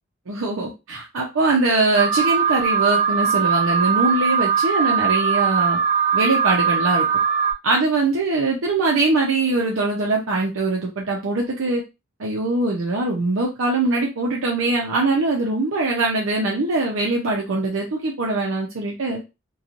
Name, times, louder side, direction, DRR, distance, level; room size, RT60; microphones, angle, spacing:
voice 1, 0.3-5.8 6.1-7.1 7.6-11.8 12.2-19.2, right 2 dB, 80° right, -2 dB, 0.6 m, -22 dB
Alarm, 1.9-7.5, right 6 dB, 40° right, 0.7 m, -20 dB
3.0 x 2.3 x 2.5 m, 0.25 s
head